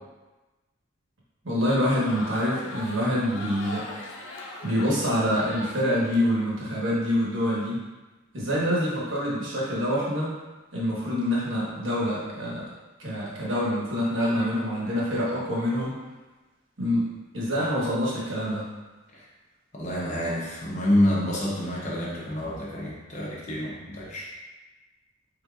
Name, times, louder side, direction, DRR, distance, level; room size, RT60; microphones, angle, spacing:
voice 1, 1.4-3.9 4.6-7.8 8.3-10.3 10.7-12.6 13.0-16.0 16.8-17.1 17.3-18.7, equal, 70° right, -6 dB, 1.2 m, -26 dB
Crowd, 1.6-6.4, left 2 dB, 75° left, 0.6 m, -40 dB
voice 2, 19.7-24.3, left 1 dB, 35° left, -4 dB, 0.7 m, -27 dB
4.1 x 3.8 x 2.3 m, 1.2 s
head